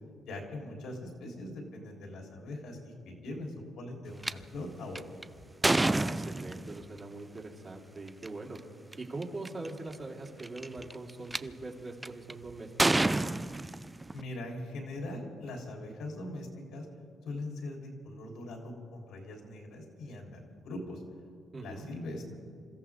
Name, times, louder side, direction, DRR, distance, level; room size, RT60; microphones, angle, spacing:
voice 1, 0.2-5.0 14.1-16.9 17.2-21.0 21.6-22.3, left 1 dB, 80° left, 0 dB, 3.5 m, -41 dB
sound 1, 4.2-4.3 5.0-6.8 8.1-8.3 8.9-9.0 9.2-9.7 10.4-11.4 12.0-12.3 12.8-14.2, right 2 dB, 15° right, 0.4 m, -28 dB
voice 2, 5.6-8.6 9.0-13.1 21.5-21.9, right 2 dB, 35° right, -1 dB, 3.0 m, -42 dB
27.5 x 14.5 x 3.6 m, 2.3 s
cardioid pair, 90°, 0 cm